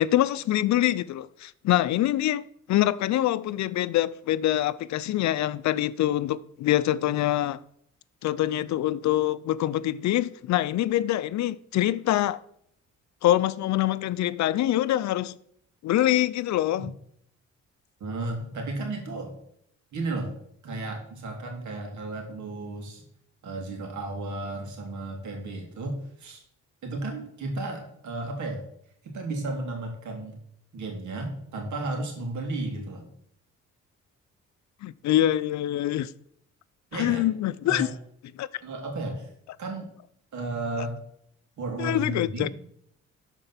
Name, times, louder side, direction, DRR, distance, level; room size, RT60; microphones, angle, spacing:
voice 1, 0.0-2.4 2.7-7.6 8.2-12.4 13.2-15.4 15.8-16.9 34.8-36.1 36.9-37.9 38.4-38.5 41.8-42.5, left 13 dB, 65° left, 0.5 m, -25 dB
voice 2, 18.0-19.3 19.9-20.4 20.6-23.0 23.4-26.4 26.8-28.6 29.0-30.4 30.7-33.1 36.9-37.2 37.6-37.9 38.6-39.3 39.6-39.9 40.3-41.0 41.6-42.5, right 2 dB, 70° right, 2.8 m, -33 dB
12.0 x 4.5 x 5.8 m
cardioid pair, 90°, 30 cm